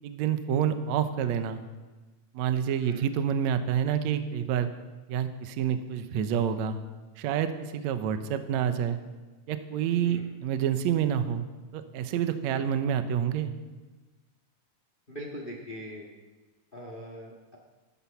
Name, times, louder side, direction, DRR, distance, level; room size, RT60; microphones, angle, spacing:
voice 1, 0.0-1.6 2.3-4.7 5.1-6.8 7.2-9.0 9.5-11.4 11.7-13.5, right 8 dB, 75° right, 9 dB, 1.7 m, -28 dB
voice 2, 15.1-16.1 16.7-17.6, equal, 80° left, 0 dB, 0.5 m, -42 dB
14.5 x 13.0 x 5.8 m, 1.3 s
omnidirectional pair, 4.3 m